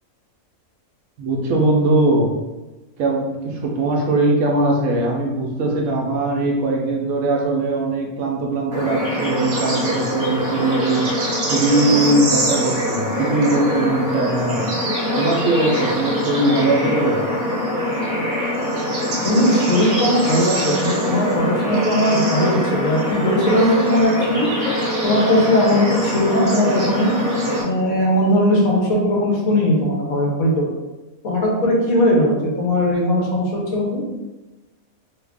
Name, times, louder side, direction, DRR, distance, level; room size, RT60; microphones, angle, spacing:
voice 1, 1.2-2.3 3.0-14.6 15.1-17.2, right 2 dB, 70° right, 0 dB, 1.1 m, -20 dB
Bird / Insect / Frog, 8.7-27.6, equal, 45° right, 1.0 m, -23 dB
voice 2, 19.2-24.5 25.0-27.1 27.6-30.6 31.2-34.0, equal, 70° left, -2 dB, 1.2 m, -19 dB
3.1 x 2.4 x 3.4 m, 1.1 s
omnidirectional pair, 1.5 m